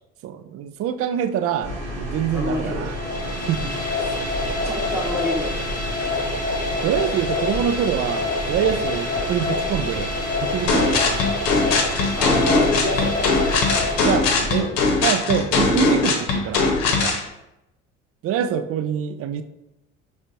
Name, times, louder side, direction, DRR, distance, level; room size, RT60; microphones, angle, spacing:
voice 1, 0.2-3.0 3.5-3.7 6.8-10.1 10.4-11.4 14.0-14.7 15.0-17.2 18.2-19.4, right 9 dB, 40° right, 10 dB, 0.4 m, -25 dB
sound 1, 1.6-14.6, right 1 dB, 85° right, 1.4 m, -31 dB
voice 2, 2.3-3.7 4.0-4.1 4.6-5.8 12.2-13.4 14.3-14.7, left 1 dB, 5° right, -4 dB, 1.1 m, -29 dB
sound 2, 2.8-14.7, left 3 dB, 20° left, 1.5 m, -27 dB
sound 3, 10.7-17.2, left 3 dB, 60° left, 0.9 m, -20 dB
5.1 x 3.3 x 2.6 m, 0.90 s
hypercardioid pair, 60°, 38 cm